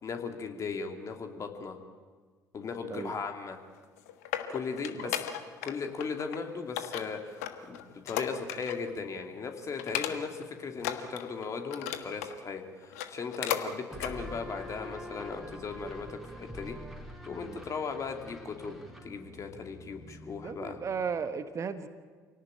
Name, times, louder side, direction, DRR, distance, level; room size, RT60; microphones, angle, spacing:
voice 1, 0.0-1.8 2.5-3.6 4.5-7.4 7.7-16.8 17.2-20.8, left 5 dB, 35° left, 5 dB, 2.8 m, -37 dB
sound 1, 3.8-5.7 6.0-6.4 6.8-8.9 9.2-9.4 9.8-10.4 10.8-12.4 12.8-13.7 14.0-14.1 14.7-14.8, left 11 dB, 70° left, 1.4 m, -36 dB
sound 2, 13.9-21.3, equal, ahead, 3.8 m, -46 dB
voice 2, 20.4-21.9, right 6 dB, 35° right, 10 dB, 1.5 m, -35 dB
27.0 x 18.0 x 8.8 m, 1.5 s
figure-of-eight pair, 55°, 9 cm